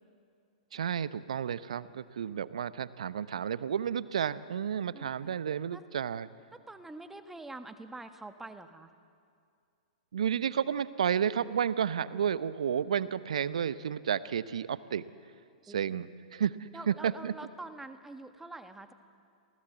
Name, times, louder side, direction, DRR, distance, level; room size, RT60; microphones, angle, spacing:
voice 1, 0.7-6.3 10.1-15.0 15.7-17.3, right 8 dB, 70° right, 16 dB, 0.8 m, -31 dB
voice 2, 4.9-5.4 5.7-5.8 6.5-8.9 12.1-12.2 15.7-16.0 16.7-18.9, right 2 dB, 5° right, 8 dB, 1.4 m, -46 dB
27.5 x 18.0 x 8.0 m, 2.3 s
figure-of-eight pair, 105°, 4 cm